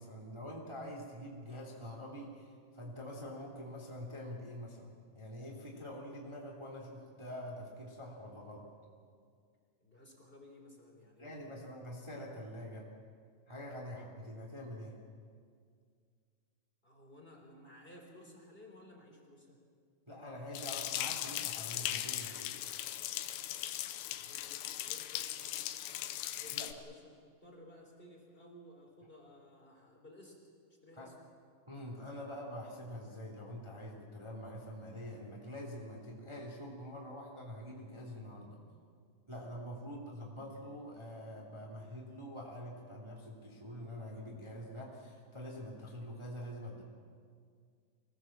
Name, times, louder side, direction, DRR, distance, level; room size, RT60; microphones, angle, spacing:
voice 1, 0.0-8.6 11.2-12.9 13.5-14.9 20.1-22.6 26.5-26.7 30.9-31.1 31.7-38.6 39.3-46.8, equal, 15° right, -2 dB, 0.9 m, -45 dB
voice 2, 9.8-11.7 16.8-19.6 24.1-25.7 26.3-30.4 30.8-31.1 39.9-40.0, left 1 dB, 15° left, 0 dB, 2.7 m, -56 dB
sound 1, 20.5-26.7, left 13 dB, 80° left, 2.7 m, -39 dB
25.5 x 18.5 x 7.3 m, 2.1 s
omnidirectional pair, 5.9 m